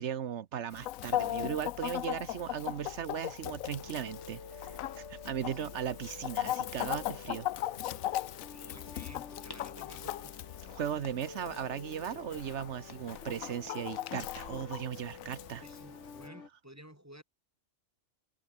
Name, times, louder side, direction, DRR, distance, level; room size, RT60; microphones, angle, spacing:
voice 1, 0.0-7.5 10.7-15.6, right 9 dB, 65° right, 1.1 m, -37 dB
Chicken rooster, 0.7-16.3, left 13 dB, 90° left, 1.1 m, -39 dB
Close To The Mystery (loop), 3.6-16.5, left 4 dB, 60° left, 2.8 m, -49 dB
voice 2, 8.5-10.3 15.6-17.2, equal, 10° right, 5.6 m, -53 dB
sound 1, 8.7-16.3, left 2 dB, 20° left, 1.2 m, -58 dB
open air
omnidirectional pair, 1.4 m